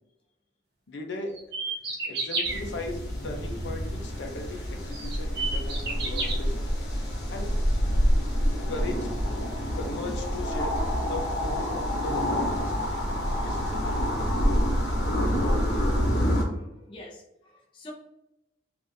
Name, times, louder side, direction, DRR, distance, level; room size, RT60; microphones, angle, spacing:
voice 1, 0.9-1.3 2.1-6.7 7.3-7.6 8.7-9.1 9.7-10.7 11.0-13.1 13.4-14.0, left 2 dB, 90° left, 3 dB, 0.6 m, -37 dB
sound 1, 1.3-2.6 4.3-4.4 4.9-6.3, right 3 dB, 60° right, 0.8 m, -30 dB
sound 2, 2.5-16.4, equal, 65° left, 1.1 m, -27 dB
voice 2, 16.5-17.9, left 1 dB, 30° left, -1 dB, 0.6 m, -48 dB
3.4 x 2.5 x 2.6 m, 0.89 s
head